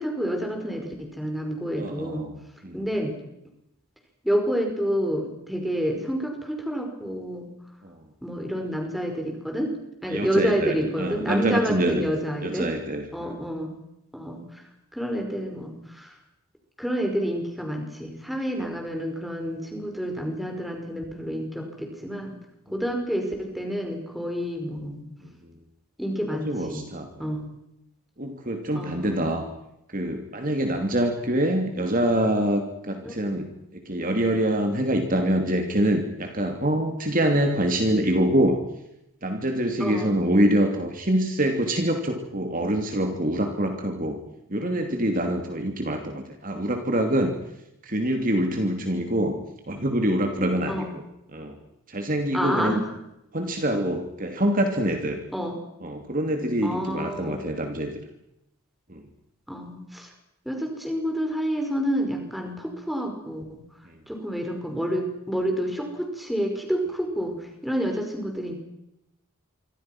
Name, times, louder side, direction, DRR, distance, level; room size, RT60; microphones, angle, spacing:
voice 1, 0.0-2.3 2.7-3.1 4.2-7.5 8.2-9.7 10.0-12.7 13.1-13.7 14.1-14.6 14.9-16.1 16.8-22.4 22.7-25.1 26.0-26.8 27.2-27.4 28.7-29.3 33.0-33.4 39.8-40.1 50.7-50.9 52.3-52.8 55.3-55.6 56.6-57.4 59.5-60.1 60.5-63.6 64.1-67.3 67.6-68.6, equal, ahead, 2 dB, 5.4 m, -29 dB
voice 2, 1.8-2.4 2.6-2.9 7.8-8.0 10.1-12.0 12.4-13.4 25.4-25.5 26.3-27.4 28.2-29.5 29.9-38.6 39.2-44.2 44.5-47.4 47.8-49.4 49.7-51.0 51.3-51.6 51.9-52.8 53.3-55.2 55.8-58.0 58.9-59.0 63.9-64.0, right 1 dB, 40° right, 4 dB, 2.8 m, -25 dB
27.5 x 25.0 x 6.1 m, 0.84 s
head